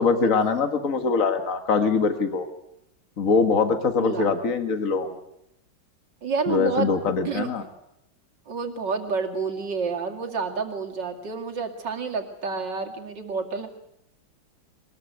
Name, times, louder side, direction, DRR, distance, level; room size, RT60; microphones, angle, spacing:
voice 1, 0.0-2.5 3.2-5.2 6.5-7.6, left 4 dB, 50° left, 7 dB, 2.1 m, -23 dB
voice 2, 4.0-4.3 6.2-6.9 7.2-7.7 8.5-13.7, right 5 dB, 75° right, 3 dB, 3.0 m, -29 dB
22.5 x 20.5 x 8.1 m, 0.78 s
omnidirectional pair, 2.0 m